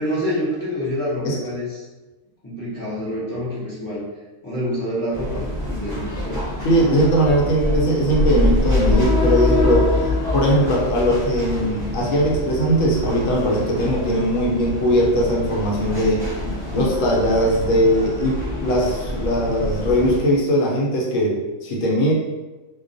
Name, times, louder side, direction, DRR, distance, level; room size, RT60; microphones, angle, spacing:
voice 1, 0.0-1.8 2.4-4.0 4.4-6.4 6.7-7.0, equal, 30° left, -10 dB, 0.3 m, -27 dB
sound 1, 5.1-20.2, left 1 dB, 25° right, 0.6 m, -25 dB
voice 2, 6.6-9.9 10.3-16.3 16.7-22.1, equal, 70° left, -2 dB, 0.9 m, -19 dB
2.2 x 2.2 x 2.5 m, 1.2 s
omnidirectional pair, 1.4 m